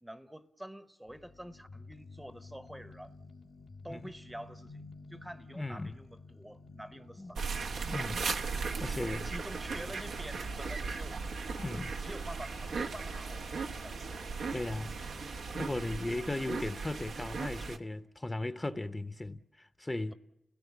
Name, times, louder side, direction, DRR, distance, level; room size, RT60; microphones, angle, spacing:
voice 1, 0.0-3.1 3.8-4.8 5.1-7.5 8.7-11.2 12.0-14.0, equal, 10° right, 0.8 m, -47 dB
sound 1, 1.1-17.0, left 3 dB, 80° left, 1.7 m, -53 dB
voice 2, 5.5-6.0 7.2-7.3 7.8-8.3 8.8-9.3 11.6-11.9 14.5-15.0 15.5-20.1, left 2 dB, 20° left, 0.8 m, -37 dB
sound 2, 7.4-17.8, right 4 dB, 85° right, 0.9 m, -37 dB
30.0 x 17.0 x 7.1 m
cardioid pair, 55°, 0 cm